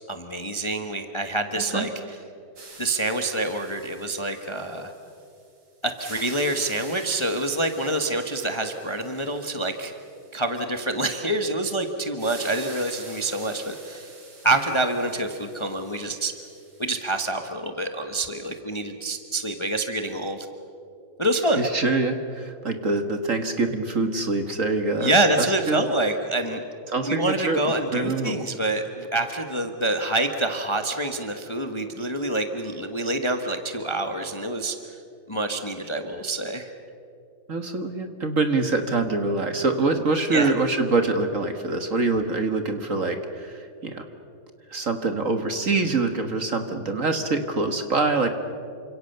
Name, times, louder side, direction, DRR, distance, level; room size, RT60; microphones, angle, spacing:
voice 1, 0.1-1.9 2.8-4.9 5.8-9.9 10.3-14.1 14.4-16.3 16.8-20.5 21.2-21.7 25.0-26.6 27.0-34.7 35.3-36.7 40.3-40.5, right 2 dB, 15° left, 6 dB, 1.2 m, -26 dB
sound 1, 2.6-5.5 5.8-10.7 12.2-17.2, right 3 dB, 85° right, 4.6 m, -46 dB
voice 2, 21.6-25.1 25.7-25.8 26.9-27.6 27.9-28.3 37.5-44.0 44.7-48.3, right 3 dB, 45° right, 7 dB, 1.7 m, -25 dB
29.0 x 26.0 x 6.8 m, 2.6 s
omnidirectional pair, 2.2 m